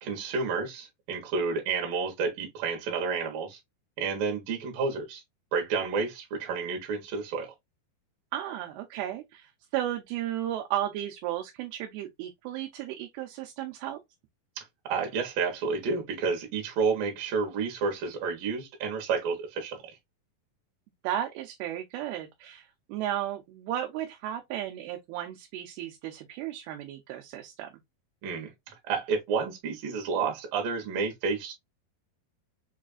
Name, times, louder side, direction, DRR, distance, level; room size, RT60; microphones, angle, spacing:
voice 1, 0.0-3.6 4.0-5.2 5.5-7.5 14.6-19.8 28.2-28.5 28.9-31.5, right 5 dB, 70° right, 2.6 m, -30 dB
voice 2, 8.3-14.0 21.0-27.7, right 12 dB, 90° right, 2.5 m, -34 dB
6.0 x 2.4 x 2.3 m
omnidirectional pair, 4.3 m